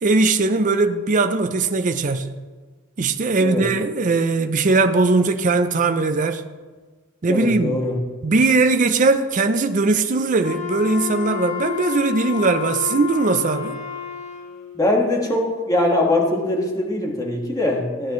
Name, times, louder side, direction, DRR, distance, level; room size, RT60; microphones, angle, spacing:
voice 1, 0.0-2.3 3.0-6.4 7.2-7.8 8.2-13.8, right 3 dB, 40° right, 0.5 m, -19 dB
voice 2, 7.3-8.0 14.7-18.1, left 1 dB, 15° left, 1.7 m, -22 dB
Wind instrument woodwind instrument, 10.4-14.7, left 10 dB, 35° left, 2.8 m, -30 dB
15.5 x 9.2 x 3.1 m
head